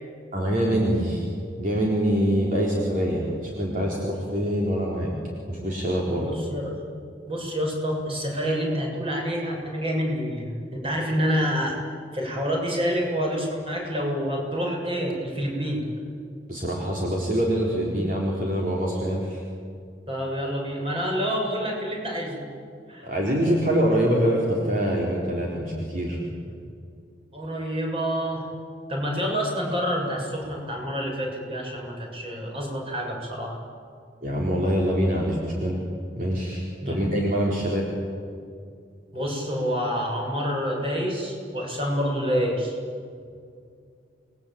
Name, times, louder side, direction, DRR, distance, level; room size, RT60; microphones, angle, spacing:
voice 1, 0.3-1.3 1.6-5.1 5.5-6.3 16.5-19.4 23.0-26.2 34.2-35.8 36.1-37.9, equal, 50° right, -3 dB, 4.2 m, -24 dB
voice 2, 6.2-6.8 7.3-11.8 12.1-15.8 20.1-22.5 22.9-23.1 27.3-28.5 28.9-33.6 36.8-37.0 39.1-42.8, equal, 30° right, 0 dB, 7.1 m, -27 dB
28.5 x 21.5 x 8.8 m, 2.3 s
head